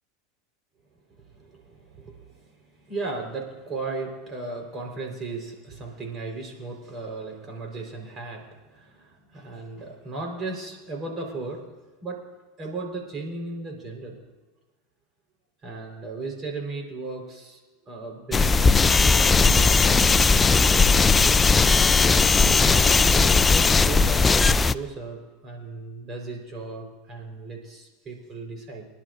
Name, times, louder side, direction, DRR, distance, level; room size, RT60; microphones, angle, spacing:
voice 1, 1.1-11.6 12.0-12.2 12.6-14.2 15.6-20.0 20.3-21.6 22.5-28.9, right 3 dB, 35° right, 1 dB, 4.5 m, -36 dB
Noise Static electromagnetic, 18.3-24.7, left 4 dB, 20° left, 0.4 m, -18 dB
26.5 x 11.0 x 2.7 m, 1.2 s
hypercardioid pair, 95°, 0 cm